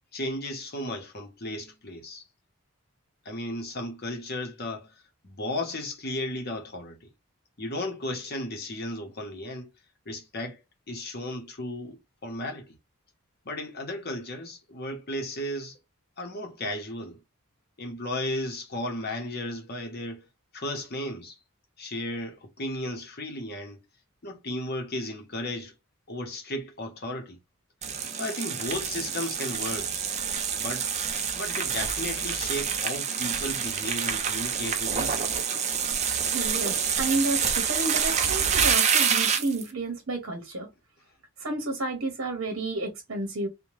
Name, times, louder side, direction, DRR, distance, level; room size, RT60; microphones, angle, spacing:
voice 1, 0.1-2.2 3.2-4.9 5.2-7.1 7.6-9.7 10.1-12.7 13.4-15.8 16.2-17.2 17.8-20.3 20.5-21.4 21.8-23.8 24.2-25.7 26.1-27.4 28.1-29.9 30.6-30.9 31.3-35.3, left 1 dB, 45° left, 0.8 m, -34 dB
sound 1, 27.8-39.7, right 7 dB, 30° right, 0.4 m, -27 dB
voice 2, 36.3-40.7 41.4-43.5, right 2 dB, 60° right, 0.8 m, -31 dB
2.7 x 2.2 x 3.1 m
head